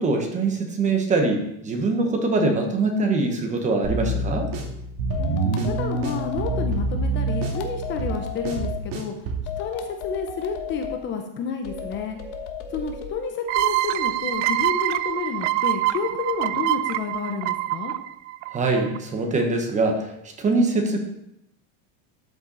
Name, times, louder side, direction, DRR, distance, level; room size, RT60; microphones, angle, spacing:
voice 1, 0.0-4.5 18.5-20.1 20.4-21.0, right 3 dB, 20° right, 3 dB, 1.3 m, -23 dB
sound 1, 3.8-9.5, right 3 dB, 60° right, 2.3 m, -27 dB
sound 2, 5.1-6.7 7.3-8.8 9.5-11.0 11.6-13.2, left 8 dB, 90° left, 1.4 m, -34 dB
voice 2, 5.2-9.1 9.6-12.2 12.7-17.9, left 5 dB, 30° left, 5 dB, 0.9 m, -30 dB
sound 3, 13.5-19.0, right 15 dB, 85° right, 0.6 m, -25 dB
12.5 x 6.0 x 4.1 m, 0.82 s
cardioid pair, 165°, 35 cm